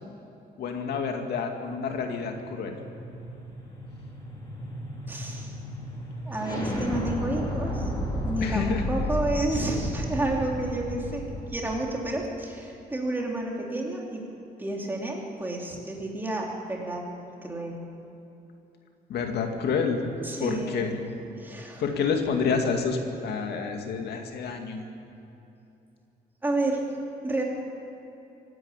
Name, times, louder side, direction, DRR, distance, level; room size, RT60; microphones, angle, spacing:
voice 1, 0.6-2.8 8.4-8.9 9.5-9.7 19.1-20.0 20.4-21.0 21.8-24.9, left 5 dB, 85° left, 3 dB, 2.3 m, -28 dB
sound 1, 1.7-11.9, equal, 25° left, 4.3 m, -33 dB
voice 2, 5.1-5.5 6.3-7.8 8.3-14.2 14.6-17.0 17.4-17.8 20.3-20.9 21.4-21.8 26.4-26.8 27.2-27.4, right 2 dB, 10° right, -1 dB, 2.9 m, -30 dB
25.0 x 12.5 x 8.4 m, 2.9 s
cardioid pair, 160°, 17 cm